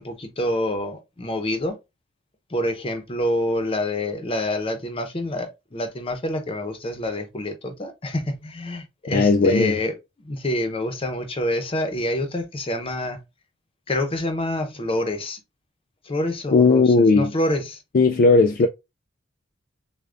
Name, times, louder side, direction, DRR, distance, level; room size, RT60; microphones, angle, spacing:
voice 1, 0.0-1.8 2.5-9.9 10.2-13.2 13.9-15.4 16.0-17.8, left 1 dB, 30° left, 0.8 m, -27 dB
voice 2, 9.1-9.8 16.5-17.3 17.9-18.7, left 3 dB, 45° left, 0.3 m, -16 dB
6.6 x 2.3 x 2.5 m
head